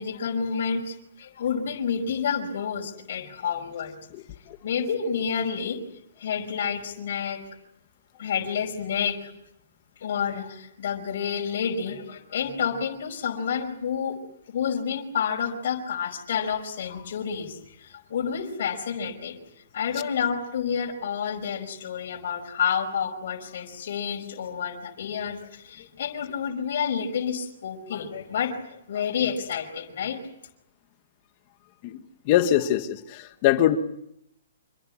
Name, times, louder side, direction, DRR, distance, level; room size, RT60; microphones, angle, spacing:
voice 1, 0.0-3.9 4.6-5.8 6.2-7.4 8.2-9.3 10.0-14.2 14.5-19.4 19.7-30.2, left 7 dB, 45° left, 0 dB, 5.2 m, -29 dB
voice 2, 32.2-33.8, left 12 dB, 25° left, 9 dB, 1.5 m, -22 dB
27.0 x 23.5 x 8.7 m, 0.79 s
hypercardioid pair, 180°, 0 cm